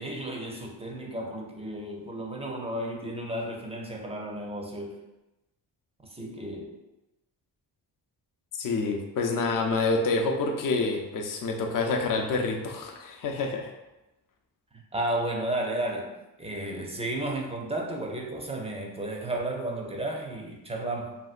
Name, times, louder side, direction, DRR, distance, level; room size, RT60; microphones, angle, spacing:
voice 1, 0.0-4.9 6.0-6.7 14.9-16.1 16.4-21.2, right 1 dB, 15° right, 0 dB, 0.4 m, -33 dB
voice 2, 8.6-13.7, left 3 dB, 50° left, 3 dB, 0.5 m, -27 dB
2.8 x 2.7 x 2.4 m, 1.0 s
cardioid pair, 85°, 44 cm